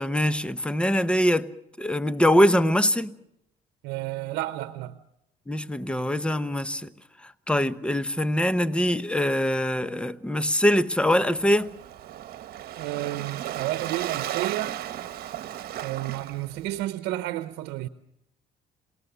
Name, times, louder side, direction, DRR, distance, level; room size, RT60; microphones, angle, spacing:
voice 1, 0.0-1.5 1.8-3.2 5.5-6.9 7.2-11.7, equal, 5° left, 0.9 m, -23 dB
voice 2, 3.8-5.0 12.8-14.8 15.8-17.9, right 15 dB, 90° right, 0.8 m, -31 dB
Waves surf, 11.1-16.8, right 12 dB, 65° right, 1.3 m, -35 dB
27.0 x 18.5 x 6.8 m
cardioid pair, 110°, 17 cm